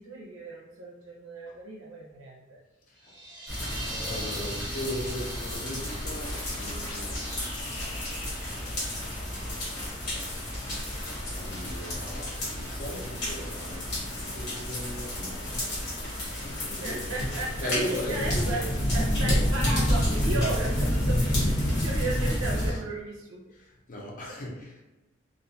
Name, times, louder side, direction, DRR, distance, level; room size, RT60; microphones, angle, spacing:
voice 1, 0.0-2.6 16.8-18.6 18.9-23.4, right 2 dB, 90° right, -2 dB, 0.5 m, -35 dB
sound 1, 3.0-8.6, right 1 dB, 20° right, 0.5 m, -41 dB
sound 2, 3.5-22.7, equal, 55° left, 1.0 m, -30 dB
voice 2, 4.0-7.6 9.9-10.0 11.0-16.0 16.4-17.2 17.6-18.7 19.2-19.4 20.1-20.3 22.5-22.8 23.5-24.8, equal, 40° left, -2 dB, 0.5 m, -38 dB
sound 3, 6.2-9.7, left 2 dB, 85° left, 0.8 m, -44 dB
2.5 x 2.2 x 2.6 m, 1.0 s
head